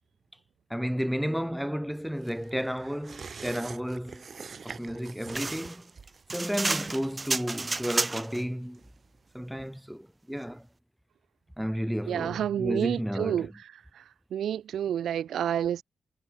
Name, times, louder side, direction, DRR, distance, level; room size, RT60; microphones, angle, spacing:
voice 1, 0.7-4.2 4.6-5.9 6.3-8.8 9.3-10.7 11.6-13.5, equal, ahead, 1.5 m, -32 dB
sound 1, 2.2-9.3 9.6-9.7, right 5 dB, 50° right, 4.9 m, -47 dB
sound 2, 5.3-8.4, right 3 dB, 30° right, 1.7 m, -31 dB
voice 2, 12.1-14.0 14.3-15.8, right 10 dB, 80° right, 0.5 m, -29 dB
cardioid pair, 75°, 0 cm